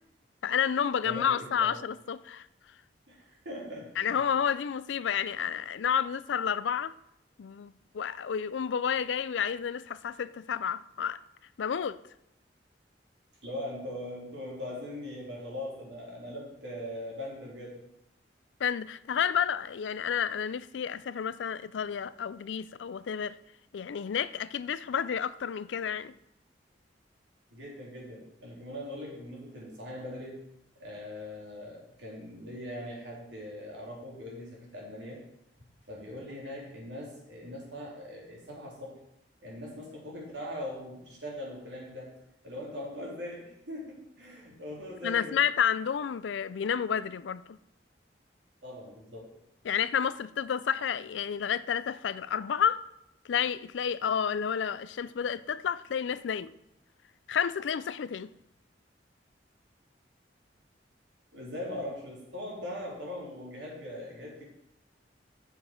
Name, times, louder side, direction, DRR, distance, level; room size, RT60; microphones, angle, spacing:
voice 1, 0.4-2.5 4.0-6.9 7.4-11.2 11.6-12.0 18.6-23.4 23.7-26.1 45.0-47.6 49.6-52.9 53.3-56.5 57.3-58.3, left 8 dB, 90° left, 0.4 m, -30 dB
voice 2, 1.0-1.8 3.1-4.1 13.4-17.8 27.5-30.4 30.8-35.2 35.9-39.0 39.4-42.1 42.4-45.4 48.6-49.3 61.3-64.5, left 1 dB, 80° right, 3.5 m, -41 dB
8.4 x 6.9 x 5.1 m
head